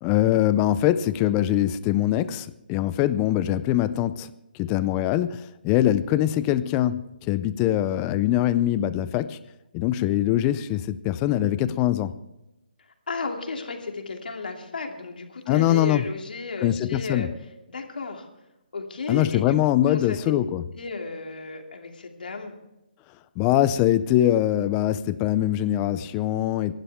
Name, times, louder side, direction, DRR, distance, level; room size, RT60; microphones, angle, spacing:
voice 1, 0.0-4.3 4.6-9.4 9.7-12.1 15.5-16.0 16.6-17.3 19.1-20.6 23.4-26.7, left 13 dB, 15° left, 14 dB, 0.4 m, -23 dB
voice 2, 13.1-17.3 17.7-18.3 18.7-19.6 19.8-20.2 20.7-22.5, left 4 dB, 65° left, 3 dB, 2.7 m, -34 dB
28.5 x 11.5 x 3.5 m, 0.94 s
hypercardioid pair, 165°, 5 cm